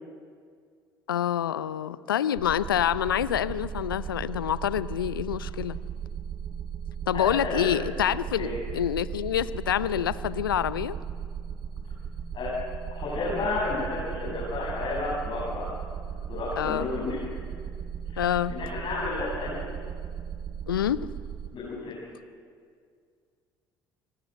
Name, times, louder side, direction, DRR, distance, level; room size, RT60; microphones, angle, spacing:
voice 1, 1.1-5.8 7.1-11.0 16.6-16.9 18.2-18.5 20.7-21.1, left 10 dB, 80° left, 17 dB, 0.5 m, -27 dB
sound 1, 2.4-21.5, right 8 dB, 45° right, 1.8 m, -36 dB
voice 2, 7.1-7.8 8.3-8.6 12.3-12.5 12.9-15.7 16.3-17.2 18.1-18.2 18.5-19.6 21.5-21.9, left 3 dB, 45° left, -7 dB, 8.0 m, -31 dB
29.0 x 18.5 x 7.9 m, 2.1 s
figure-of-eight pair, 55°, 11 cm